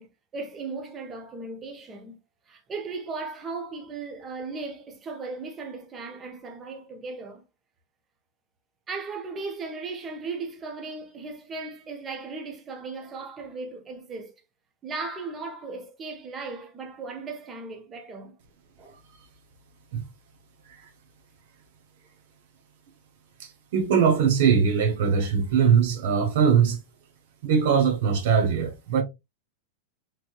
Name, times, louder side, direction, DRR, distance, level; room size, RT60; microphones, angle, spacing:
voice 1, 0.0-2.2 2.5-7.5 8.9-14.3 14.8-18.4 18.8-19.0, right 3 dB, 25° right, 0.8 m, -37 dB
voice 2, 23.4-26.8 27.4-29.0, right 7 dB, 65° right, 0.7 m, -21 dB
3.0 x 3.0 x 2.3 m
hypercardioid pair, 120°, 0 cm